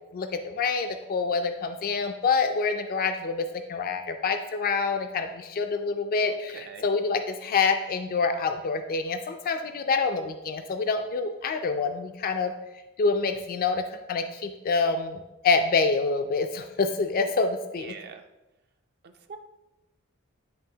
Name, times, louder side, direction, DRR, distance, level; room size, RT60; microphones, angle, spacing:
voice 1, 0.1-12.5 13.0-13.8 14.1-17.9, left 4 dB, 45° left, 7 dB, 0.4 m, -27 dB
voice 2, 6.2-6.9 17.8-18.3 19.0-19.4, right 5 dB, 50° right, 6 dB, 0.4 m, -44 dB
10.0 x 3.4 x 2.8 m, 1.0 s
head